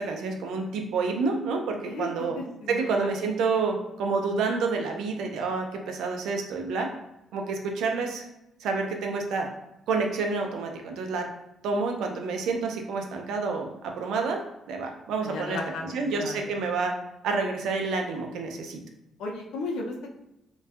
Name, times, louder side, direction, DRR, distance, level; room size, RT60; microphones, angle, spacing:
voice 1, 0.1-2.4 2.7-6.9 7.3-8.2 8.6-9.5 9.9-11.2 11.6-14.4 14.7-15.6 15.9-16.9 17.2-18.8, right 4 dB, 85° right, 3 dB, 0.4 m, -28 dB
voice 2, 1.8-3.1 15.2-16.5 19.2-20.1, left 3 dB, 85° left, 0 dB, 0.5 m, -35 dB
2.5 x 2.2 x 2.3 m, 0.89 s
cardioid pair, 90°, 0 cm